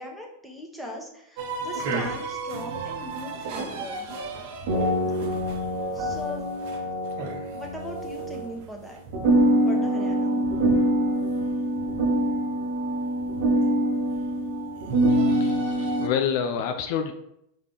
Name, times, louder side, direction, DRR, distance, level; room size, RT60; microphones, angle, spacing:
voice 1, 0.0-4.1 5.9-6.4 7.5-9.0 9.6-10.4, left 1 dB, ahead, -1 dB, 1.1 m, -39 dB
sound 1, 1.4-8.6 9.1-16.1, right 1 dB, 60° right, 0.8 m, -25 dB
voice 2, 15.1-17.1, left 8 dB, 60° left, 6 dB, 0.4 m, -28 dB
4.8 x 3.0 x 3.6 m, 0.78 s
hypercardioid pair, 100°, 0 cm